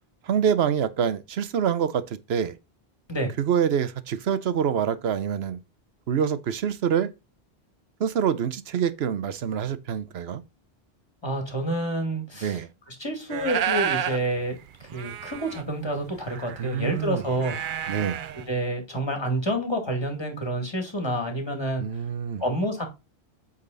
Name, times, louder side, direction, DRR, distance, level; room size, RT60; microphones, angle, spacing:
voice 1, 0.2-2.5 3.4-5.6 6.1-7.1 8.0-10.4 12.4-12.7 16.6-17.2 17.9-18.2 21.8-22.4, right 8 dB, 75° right, 1.0 m, -26 dB
voice 2, 11.2-12.6 12.9-14.6 14.9-17.6 18.5-21.8 22.4-22.8, right 1 dB, 25° left, 2.3 m, -28 dB
sound 1, 13.3-14.2 14.6-14.7 14.8-18.5, right 9 dB, 60° right, 0.6 m, -31 dB
8.5 x 4.0 x 3.8 m
omnidirectional pair, 1.1 m